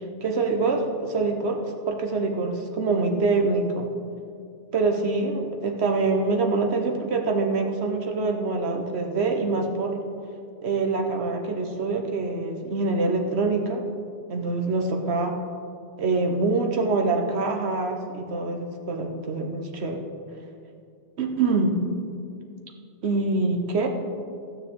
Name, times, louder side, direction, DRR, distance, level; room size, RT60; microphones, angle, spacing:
voice 1, 0.2-3.9 4.7-10.0 10.6-13.8 14.3-15.4 16.0-20.0 21.2-21.8 23.0-23.9, right 3 dB, 70° right, 3 dB, 1.2 m, -25 dB
12.5 x 9.4 x 3.6 m, 2.4 s
omnidirectional pair, 1.2 m